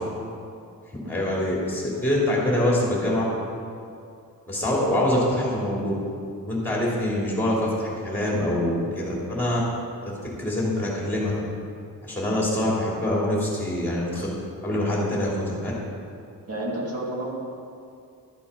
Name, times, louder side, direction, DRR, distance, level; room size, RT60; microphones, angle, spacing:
voice 1, 1.0-3.2 4.5-5.9 6.4-9.6 10.0-10.1 10.4-11.3 12.0-14.3 14.6-15.7, left 1 dB, 5° left, -5 dB, 2.9 m, -25 dB
voice 2, 16.5-17.3, right 1 dB, 40° right, -3 dB, 2.4 m, -31 dB
12.5 x 7.0 x 5.7 m, 2.5 s
wide cardioid pair, 160°, 36 cm